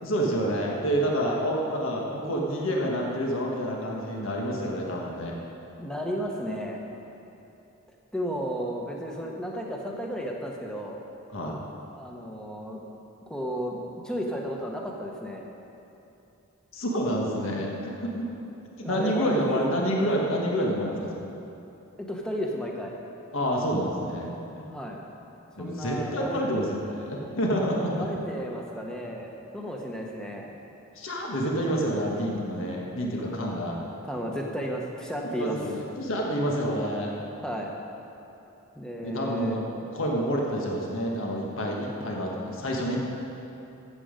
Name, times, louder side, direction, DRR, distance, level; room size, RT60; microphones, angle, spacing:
voice 1, 0.0-5.3 11.3-11.6 16.7-18.2 18.9-21.3 23.3-24.4 25.5-28.1 30.9-33.8 35.2-37.1 39.0-43.0, equal, 70° left, -1 dB, 1.5 m, -28 dB
voice 2, 5.8-6.8 8.1-11.0 12.0-12.9 13.3-15.5 18.8-19.7 22.0-22.9 24.7-25.1 25.6-26.4 28.0-30.6 33.4-33.5 34.0-35.6 37.4-37.7 38.7-39.9, equal, 5° left, -1 dB, 1.0 m, -33 dB
13.5 x 7.7 x 5.1 m, 2.9 s
head